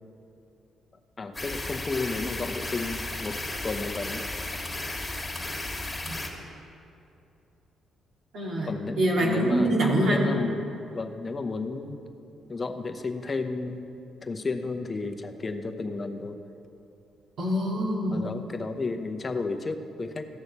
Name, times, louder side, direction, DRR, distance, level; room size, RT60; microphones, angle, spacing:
voice 1, 1.2-4.2 8.7-9.8 10.0-10.6 10.9-12.0 12.5-13.9 14.2-16.4 18.1-20.3, left 3 dB, 30° left, 7 dB, 0.8 m, -32 dB
sound 1, 1.3-6.3, left 2 dB, 10° left, 1.9 m, -34 dB
voice 2, 8.3-10.2 17.4-18.2, right 1 dB, 70° right, -3 dB, 2.2 m, -25 dB
15.5 x 6.4 x 4.1 m, 2.7 s
cardioid pair, 90°, 0 cm